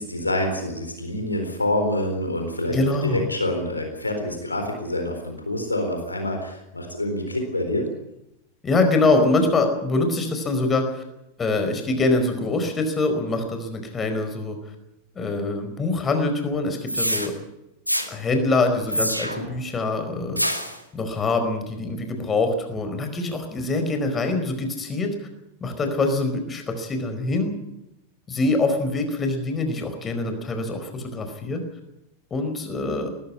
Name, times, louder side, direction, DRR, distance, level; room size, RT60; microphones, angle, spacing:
voice 1, 0.0-2.8 3.0-7.9, left 1 dB, 80° left, 4 dB, 4.0 m, -26 dB
voice 2, 2.7-3.2 8.6-11.0 11.4-14.6 15.1-17.3 18.1-20.4 20.9-25.1 25.6-27.6 28.3-31.6 32.3-33.1, left 2 dB, 20° left, 6 dB, 4.7 m, -24 dB
sound 1, 16.9-17.3 17.9-18.1 18.9-19.5 20.4-20.8, equal, 90° right, 2.3 m, -25 dB
20.0 x 15.0 x 9.8 m, 0.87 s
figure-of-eight pair, 90°, 0 cm